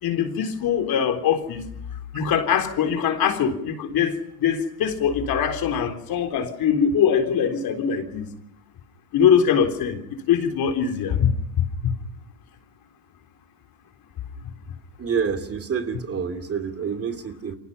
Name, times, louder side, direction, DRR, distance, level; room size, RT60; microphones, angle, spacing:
voice 1, 0.0-1.6 2.1-8.3 9.1-10.0 10.3-11.3 11.8-11.9, left 8 dB, 50° left, 3.9 m, -22 dB
voice 2, 15.0-17.5, right 6 dB, 30° right, 2.7 m, -27 dB
29.5 x 24.5 x 5.7 m
supercardioid pair, 105°, 47 cm